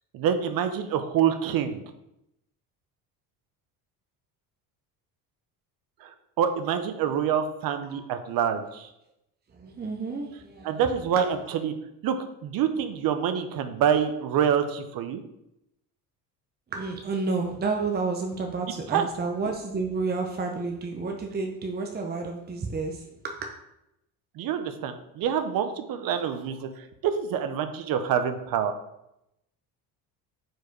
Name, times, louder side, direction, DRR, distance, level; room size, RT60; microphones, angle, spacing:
voice 1, 0.1-1.8 6.0-6.1 6.4-8.9 10.6-11.7 12.0-12.2 12.4-15.2 18.9-19.1 24.4-28.7, right 8 dB, 60° right, 9 dB, 0.8 m, -26 dB
voice 2, 9.5-10.8 16.7-23.5, right 4 dB, 25° right, 2 dB, 0.8 m, -30 dB
4.7 x 4.6 x 4.6 m, 0.85 s
supercardioid pair, 85°, 38 cm